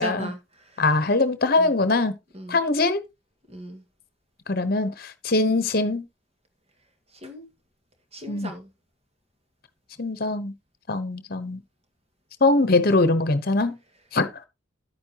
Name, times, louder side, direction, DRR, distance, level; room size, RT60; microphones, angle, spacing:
voice 1, 0.0-0.8 1.6-1.7 2.3-2.6 3.5-3.8 7.1-7.5 8.1-8.7, equal, 30° right, 2.0 m, -36 dB
voice 2, 0.8-2.1 2.5-3.0 4.5-6.1 8.3-8.5 10.0-10.5 10.9-11.6 12.4-13.8 14.1-14.3, left 2 dB, 50° left, 1.1 m, -22 dB
10.5 x 8.8 x 3.0 m
head